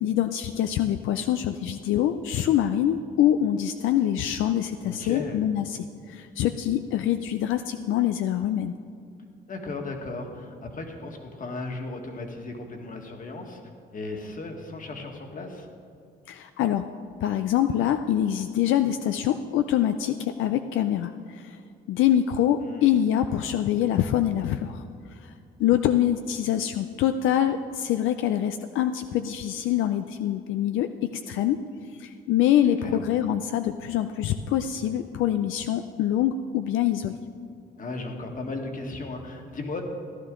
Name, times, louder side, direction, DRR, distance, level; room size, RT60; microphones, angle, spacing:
voice 1, 0.0-5.8 6.1-8.7 16.3-16.9 17.2-21.6 21.9-24.8 25.1-25.3 25.6-31.6 32.0-37.1, left 11 dB, 85° left, 8 dB, 0.5 m, -25 dB
voice 2, 4.8-5.4 9.5-13.6 13.9-15.7 22.6-23.0 32.8-33.1 37.8-39.8, left 3 dB, 45° left, 3 dB, 1.7 m, -36 dB
15.0 x 11.0 x 3.8 m, 2.4 s
cardioid pair, 90°, 20 cm